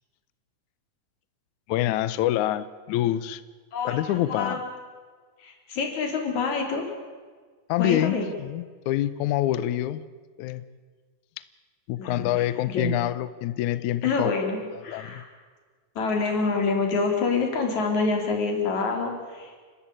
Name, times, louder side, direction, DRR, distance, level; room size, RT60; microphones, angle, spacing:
voice 1, 1.7-3.4 3.8-4.6 7.7-8.1 8.4-10.0 10.4-10.6 11.9-14.3 14.9-15.2, left 13 dB, 85° left, 14 dB, 1.7 m, -26 dB
voice 2, 3.7-4.6 5.4-6.9 7.8-8.3 12.0-12.9 14.0-15.3 16.0-19.6, left 4 dB, 50° left, 3 dB, 4.4 m, -27 dB
30.0 x 13.0 x 8.9 m, 1.5 s
omnidirectional pair, 4.4 m